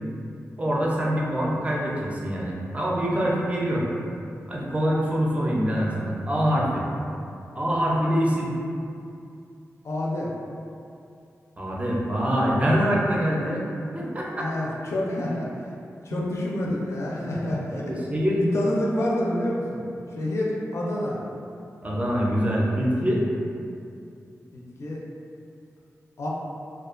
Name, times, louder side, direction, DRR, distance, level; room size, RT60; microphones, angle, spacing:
voice 1, 0.6-3.9 4.5-6.8 7.5-8.5 11.6-13.6 13.9-14.5 16.1-16.2 17.7-18.4 21.8-23.2, equal, 25° right, -4 dB, 0.4 m, -24 dB
voice 2, 9.8-10.3 14.4-15.5 16.0-17.9 18.4-19.8 20.2-21.2 24.5-25.0 26.2-26.3, left 1 dB, 60° left, -4 dB, 0.4 m, -28 dB
2.4 x 2.2 x 2.4 m, 2.5 s
wide cardioid pair, 100°, 5 cm